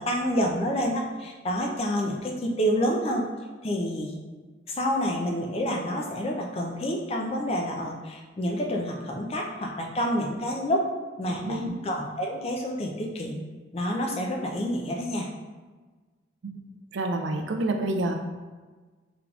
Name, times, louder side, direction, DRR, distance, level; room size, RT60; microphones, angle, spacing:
voice 1, 0.0-3.2 3.6-4.1 4.7-10.9 11.2-13.4 13.7-15.3, equal, 30° left, 1 dB, 0.4 m, -28 dB
voice 2, 11.3-11.7 16.4-16.6 16.9-18.1, right 2 dB, 65° right, 4 dB, 0.4 m, -28 dB
3.7 x 3.4 x 2.3 m, 1.3 s
head